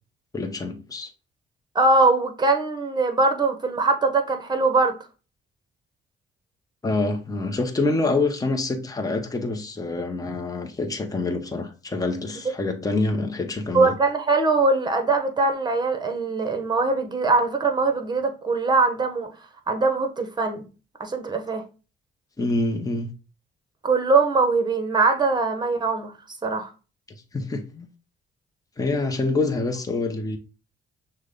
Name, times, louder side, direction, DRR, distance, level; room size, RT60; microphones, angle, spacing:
voice 1, 0.3-1.1 6.8-13.9 22.4-23.1 27.3-27.9 28.8-30.4, left 3 dB, 20° left, 0.8 m, -26 dB
voice 2, 1.7-5.0 13.7-19.3 19.7-20.7 21.0-21.6 23.8-26.1 26.4-26.7, right 3 dB, 20° right, 1.0 m, -22 dB
6.1 x 2.2 x 3.7 m
cardioid pair, 90°, 20 cm